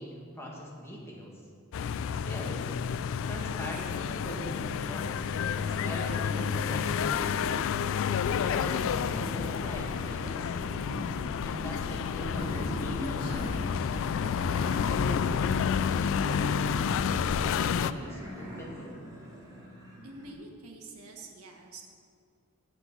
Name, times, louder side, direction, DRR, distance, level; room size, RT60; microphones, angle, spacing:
voice 1, 0.0-1.3 2.3-2.6 3.2-5.2 5.6-7.7 8.3-10.9 11.4-13.9 14.7-18.9, equal, 10° left, -3 dB, 1.8 m, -42 dB
sound 1, 1.7-17.9, left 7 dB, 65° left, 0.3 m, -30 dB
sound 2, 5.0-20.3, equal, 20° right, 2.4 m, -43 dB
Human voice, 12.0-14.7, equal, 45° left, 2.5 m, -40 dB
voice 2, 20.0-21.8, right 3 dB, 90° right, 2 dB, 1.5 m, -47 dB
9.9 x 8.0 x 5.8 m, 2.2 s
head